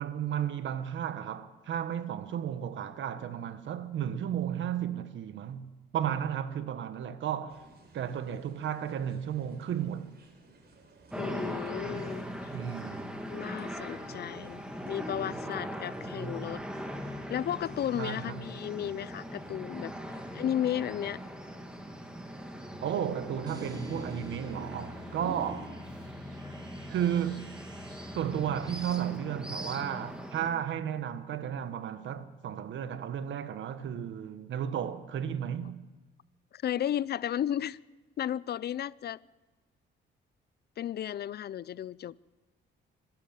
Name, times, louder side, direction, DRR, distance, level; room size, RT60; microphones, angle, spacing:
voice 1, 0.0-7.6 7.9-10.1 12.5-13.1 18.0-18.4 22.8-25.8 26.9-27.6 28.1-35.8, right 9 dB, 70° right, 1.6 m, -33 dB
sound 1, 7.5-25.7, right 2 dB, 55° right, 5.4 m, -51 dB
sound 2, 11.1-30.5, equal, 5° right, 3.1 m, -40 dB
voice 2, 11.2-12.5 13.3-16.6 17.3-19.9 20.3-21.2 30.5-30.6 36.5-37.8 38.2-39.2 40.8-42.1, left 10 dB, 55° left, 0.6 m, -34 dB
sound 3, 23.5-29.0, left 2 dB, 20° right, 5.1 m, -50 dB
25.5 x 12.5 x 8.8 m
cardioid pair, 90°, 20 cm